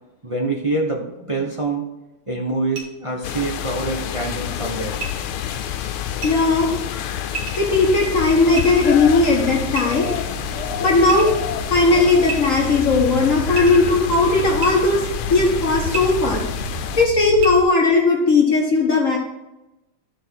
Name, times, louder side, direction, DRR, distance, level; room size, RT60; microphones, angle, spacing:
voice 1, 0.2-1.8 2.3-5.0 10.4-10.6, right 2 dB, 25° right, -1 dB, 0.6 m, -25 dB
sound 1, 2.7-2.8 5.0-5.1 6.2-6.3 7.3-7.7 8.6-9.0 9.8-10.3 11.1-11.4 12.2-12.8 13.5-13.9 14.6-14.7 15.9-16.0 17.4-17.5, right 4 dB, 85° right, 2.7 m, -30 dB
sound 2, 3.2-17.1, left 10 dB, 85° left, 1.6 m, -28 dB
voice 2, 6.2-6.7 7.6-10.1 10.8-11.3 11.7-15.0 15.3-16.4 17.0-19.2, left 3 dB, 40° left, -1 dB, 1.5 m, -17 dB
sound 3, 8.1-17.6, right 7 dB, 65° right, 1.2 m, -34 dB
13.5 x 4.6 x 4.6 m, 0.97 s
omnidirectional pair, 2.3 m